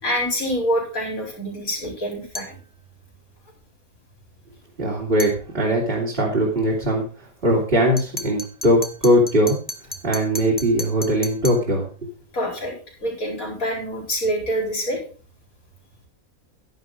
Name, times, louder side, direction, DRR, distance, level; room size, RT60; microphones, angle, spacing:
voice 1, 0.0-2.5 12.3-12.7 13.0-15.0, equal, 80° left, -1 dB, 4.6 m, -26 dB
sound 1, 2.3-2.6 5.2-5.4 8.0-11.7, left 1 dB, 10° left, 0.9 m, -34 dB
voice 2, 4.8-9.6 10.0-12.1, equal, 40° right, -2 dB, 3.0 m, -20 dB
11.0 x 10.5 x 3.7 m, 0.38 s
omnidirectional pair, 1.5 m